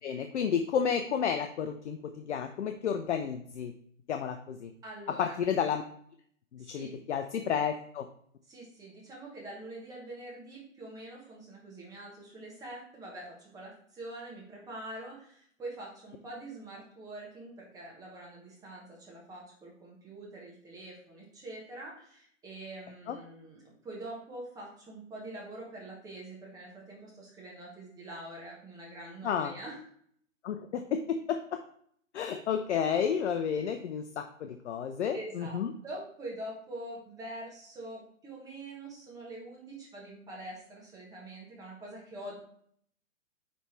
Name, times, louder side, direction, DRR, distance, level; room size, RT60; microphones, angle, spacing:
voice 1, 0.0-3.7 4.1-4.7 5.2-5.8 6.5-8.1 23.1-23.2 29.2-29.5 30.4-31.6 32.1-35.7, left 7 dB, 60° left, 6 dB, 0.6 m, -31 dB
voice 2, 4.8-5.4 6.6-6.9 8.5-29.8 35.1-42.3, right 1 dB, 10° right, -3 dB, 1.2 m, -45 dB
9.4 x 3.4 x 3.2 m, 0.64 s
hypercardioid pair, 150°, 39 cm